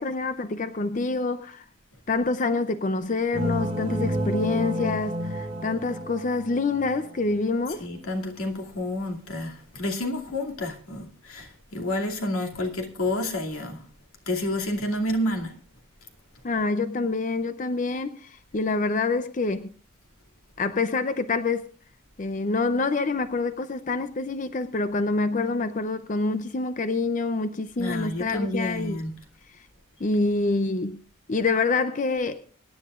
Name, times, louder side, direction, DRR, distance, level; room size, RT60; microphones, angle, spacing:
voice 1, 0.0-1.6 2.1-7.8 16.4-19.7 20.6-21.7 22.2-29.0 30.0-31.0 31.3-32.5, left 3 dB, 35° left, 0.5 m, -26 dB
sound 1, 3.3-7.3, equal, 30° right, 3.3 m, -30 dB
voice 2, 7.8-13.8 14.3-15.5 27.8-29.1, left 1 dB, 90° left, 2.5 m, -29 dB
24.0 x 10.5 x 2.5 m
head